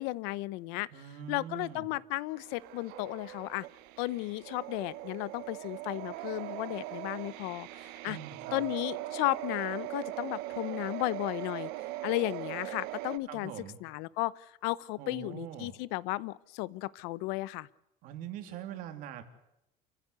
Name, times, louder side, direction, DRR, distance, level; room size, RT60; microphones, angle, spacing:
voice 1, 0.0-0.9 1.3-3.7 4.0-8.2 8.5-11.7 12.0-13.5 13.8-17.7, left 20 dB, 90° left, 20 dB, 0.8 m, -34 dB
voice 2, 0.9-1.9 8.0-8.6 13.3-13.8 15.0-15.8 18.0-19.2, right 10 dB, 55° right, 8 dB, 3.0 m, -43 dB
sound 1, 2.3-13.2, right 17 dB, 70° right, 1.2 m, -40 dB
28.0 x 15.5 x 8.2 m, 0.86 s
cardioid pair, 180°, 17 cm